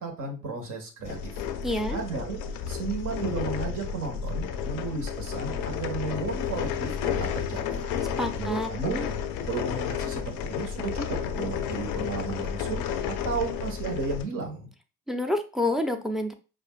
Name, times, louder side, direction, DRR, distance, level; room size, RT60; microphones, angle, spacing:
voice 1, 0.0-1.3 1.9-2.4 2.7-7.9 8.3-9.1 9.5-14.7, right 4 dB, 55° right, 2 dB, 1.5 m, -34 dB
sound 1, 1.0-14.2, left 7 dB, 75° left, 0.6 m, -32 dB
voice 2, 1.6-2.0 8.2-8.7 15.1-16.3, left 1 dB, ahead, 6 dB, 0.7 m, -28 dB
4.9 x 2.5 x 2.4 m, 0.33 s
hypercardioid pair, 45°, 37 cm